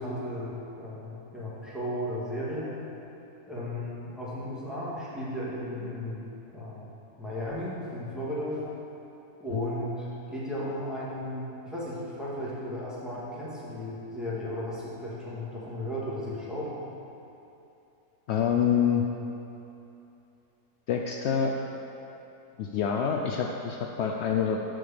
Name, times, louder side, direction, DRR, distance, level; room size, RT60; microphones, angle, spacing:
voice 1, 0.0-2.7 3.5-6.2 6.5-6.9 7.2-8.6 9.4-10.1 10.3-16.8, left 1 dB, ahead, -9 dB, 1.9 m, -35 dB
voice 2, 18.3-19.1 20.9-21.5 22.6-24.6, left 7 dB, 75° left, 1 dB, 0.6 m, -26 dB
7.7 x 5.1 x 7.2 m, 2.9 s
omnidirectional pair, 1.7 m